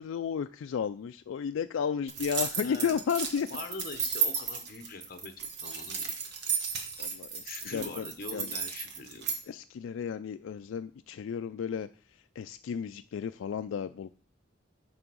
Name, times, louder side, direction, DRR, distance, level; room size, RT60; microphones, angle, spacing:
voice 1, 0.0-3.5 7.0-8.0 8.3-8.5 9.5-11.9 12.4-14.1, left 7 dB, 80° left, 10 dB, 0.3 m, -33 dB
sound 1, 2.1-9.4, right 6 dB, 55° right, 1.3 m, -34 dB
voice 2, 2.6-3.0 3.4-6.1 6.6-6.7 7.4-9.3, left 3 dB, 50° left, 7 dB, 0.9 m, -43 dB
8.9 x 3.4 x 6.2 m, 0.43 s
head